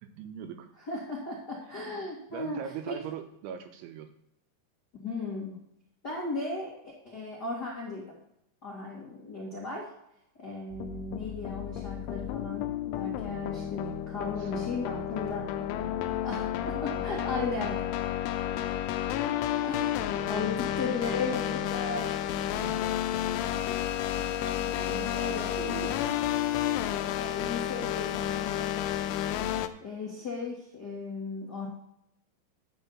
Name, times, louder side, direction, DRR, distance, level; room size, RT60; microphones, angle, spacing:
voice 1, 0.0-0.7 2.3-4.1 14.1-15.9 16.9-17.0 17.6-17.7 20.0-21.9 22.6-26.0, right 8 dB, 80° right, 7 dB, 3.0 m, -44 dB
voice 2, 0.9-2.6 2.9-3.0 4.9-5.6 6.0-8.2 8.6-9.9 10.4-15.6 16.2-17.9 19.6-22.5 24.3-25.5 27.2-29.5 29.8-31.7, left 3 dB, 55° left, -5 dB, 1.1 m, -36 dB
sound 1, 10.7-29.7, left 11 dB, 80° left, 2.9 m, -31 dB
11.0 x 4.9 x 7.1 m, 0.79 s
omnidirectional pair, 5.8 m